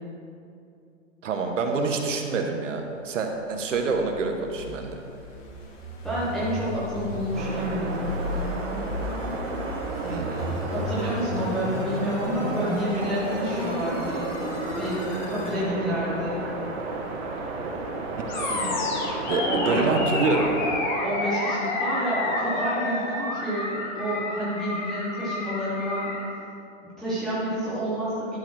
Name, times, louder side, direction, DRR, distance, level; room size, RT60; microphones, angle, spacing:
voice 1, 1.2-5.0 10.0-10.7 18.5-18.8 19.3-20.5, right 4 dB, 70° right, 3 dB, 1.2 m, -27 dB
sound 1, 3.4-15.6, left 2 dB, 70° left, 2.2 m, -34 dB
voice 2, 6.0-8.1 10.7-14.3 14.8-16.4 19.4-20.0 21.0-26.1 26.8-28.4, equal, ahead, -12 dB, 0.6 m, -29 dB
sound 2, 7.3-20.8, right 3 dB, 50° right, 1.5 m, -33 dB
Animal, 18.3-26.2, left 2 dB, 35° left, 1.5 m, -29 dB
11.5 x 4.2 x 6.1 m, 2.6 s
hypercardioid pair, 170°, 39 cm